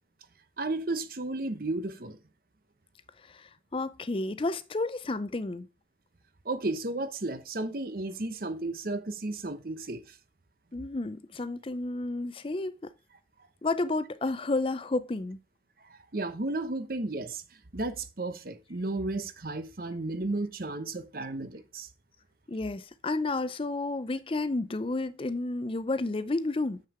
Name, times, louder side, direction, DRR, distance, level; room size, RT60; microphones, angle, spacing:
voice 1, 0.6-2.2 6.4-10.2 15.8-17.4 17.7-21.9, right 2 dB, 55° right, 1.0 m, -33 dB
voice 2, 3.2-5.7 10.7-12.9 13.6-15.4 22.5-26.8, left 2 dB, 30° left, 0.5 m, -31 dB
7.4 x 6.5 x 4.8 m
head